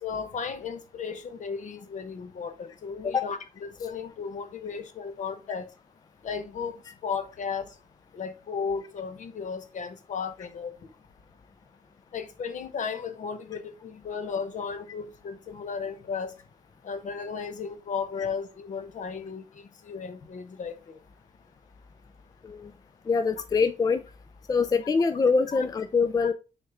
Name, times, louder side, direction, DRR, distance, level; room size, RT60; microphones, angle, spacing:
voice 1, 0.0-3.4 3.8-5.7 6.2-6.7 7.0-7.7 8.1-10.8 12.1-16.3 16.8-21.0 26.2-26.3, left 6 dB, 60° left, 1.0 m, -35 dB
voice 2, 23.1-24.0 24.5-26.3, left 5 dB, 25° left, 0.3 m, -24 dB
6.4 x 4.3 x 3.4 m
wide cardioid pair, 160°, 14 cm